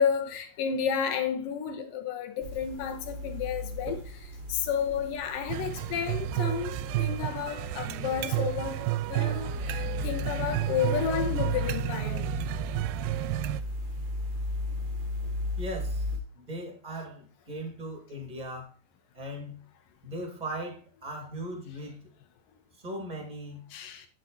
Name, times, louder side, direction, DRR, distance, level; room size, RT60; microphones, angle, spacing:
voice 1, 0.0-4.0 4.5-12.2 23.7-24.1, left 7 dB, 75° left, 2.7 m, -31 dB
sound 1, 2.4-16.2, left 2 dB, 45° right, 1.2 m, -36 dB
sound 2, 5.5-13.6, right 17 dB, 80° right, 2.2 m, -31 dB
voice 2, 15.6-16.1 16.3-18.7 19.1-19.6 20.0-22.1 22.8-23.6, right 1 dB, 15° right, 1.8 m, -38 dB
10.5 x 5.9 x 4.2 m
omnidirectional pair, 4.1 m